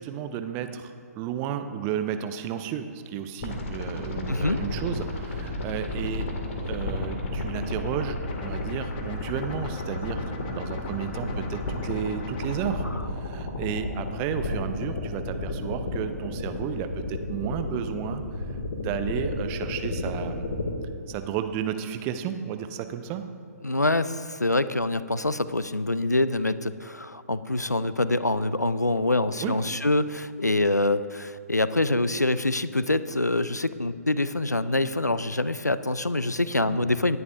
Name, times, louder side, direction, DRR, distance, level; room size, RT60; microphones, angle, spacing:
voice 1, 0.0-6.3 6.6-18.4 18.7-20.5 21.1-23.3 29.4-29.6 36.7-36.9, right 9 dB, 25° right, 9 dB, 0.6 m, -33 dB
sound 1, 3.4-20.7, left 2 dB, 55° left, 1.9 m, -32 dB
voice 2, 4.3-4.6 23.6-37.2, left 2 dB, 90° left, 15 dB, 0.4 m, -25 dB
sound 2, 8.3-12.7, left 2 dB, 35° left, 1.2 m, -41 dB
18.5 x 10.5 x 2.5 m, 2.1 s
figure-of-eight pair, 125°, 9 cm